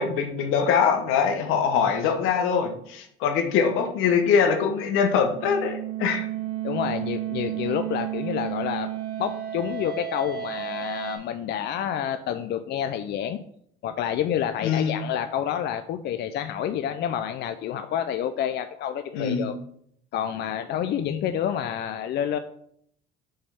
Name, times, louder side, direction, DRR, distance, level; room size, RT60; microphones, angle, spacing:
voice 1, 0.0-6.3 14.6-15.0 19.1-19.5, left 6 dB, 80° left, 5 dB, 1.1 m, -23 dB
sound 1, 4.9-11.2, right 12 dB, 90° right, 2.3 m, -32 dB
voice 2, 6.6-8.9 9.2-13.4 13.8-19.5 20.1-22.4, left 9 dB, 55° left, 9 dB, 0.4 m, -28 dB
5.5 x 3.4 x 5.5 m, 0.67 s
cardioid pair, 115°, 21 cm